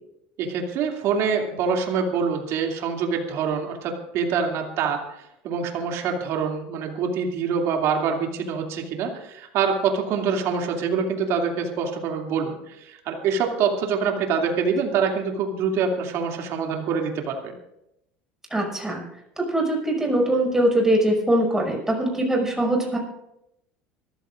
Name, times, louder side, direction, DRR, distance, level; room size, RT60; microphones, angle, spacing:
voice 1, 0.4-5.0 5.4-17.5, right 6 dB, 60° right, 2 dB, 2.7 m, -25 dB
voice 2, 18.5-19.0 19.4-23.0, right 1 dB, 10° right, 0 dB, 6.0 m, -22 dB
25.0 x 14.0 x 2.6 m, 0.84 s
hypercardioid pair, 80°, 5 cm